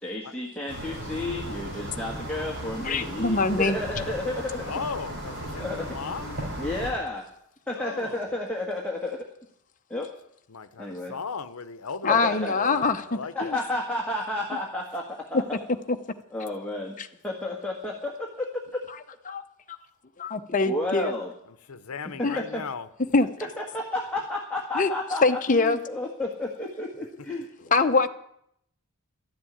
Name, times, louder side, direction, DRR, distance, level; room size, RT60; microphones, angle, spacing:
voice 1, 0.0-4.7 5.6-5.9 6.6-7.2 7.7-9.2 9.9-10.1 10.8-11.1 12.1-12.6 13.3-15.6 16.3-17.0 17.2-18.5 18.7-18.8 20.7-21.3 22.2-22.6 23.2-23.3 23.7-27.4, left 2 dB, 5° left, 1.6 m, -31 dB
sound 1, 0.7-6.9, equal, 55° right, 5.2 m, -36 dB
voice 2, 2.8-3.8 12.0-13.6 17.0-17.1 19.3-19.4 20.2-21.1 22.2-22.4 23.1-23.3 24.7-24.9 25.2-25.8 27.7-28.1, left 3 dB, 35° left, 0.8 m, -23 dB
voice 3, 4.6-6.3 7.7-8.2 10.5-13.6 21.7-22.9, left 5 dB, 80° left, 0.8 m, -37 dB
13.0 x 7.6 x 10.0 m
head